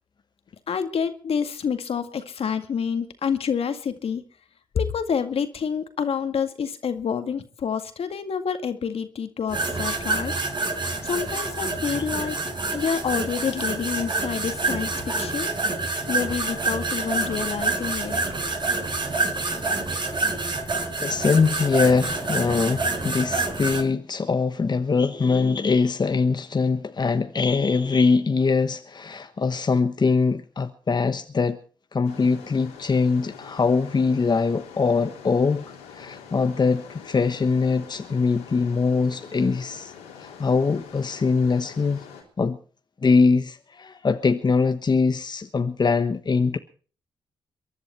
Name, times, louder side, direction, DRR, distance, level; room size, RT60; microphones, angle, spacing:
voice 1, 0.7-4.2 4.7-10.3 11.0-12.4 12.7-15.6 16.1-18.2, left 7 dB, 65° left, 2.0 m, -28 dB
sound 1, 9.5-23.8, right 3 dB, 45° right, 5.3 m, -27 dB
voice 2, 21.0-31.6 31.9-35.7 35.9-39.9 40.2-42.0 42.4-42.6 43.0-46.6, left 4 dB, 40° left, 1.2 m, -22 dB
sound 2, 32.0-42.2, left 7 dB, 90° left, 3.5 m, -44 dB
23.0 x 11.0 x 4.5 m
hypercardioid pair, 40°, 11 cm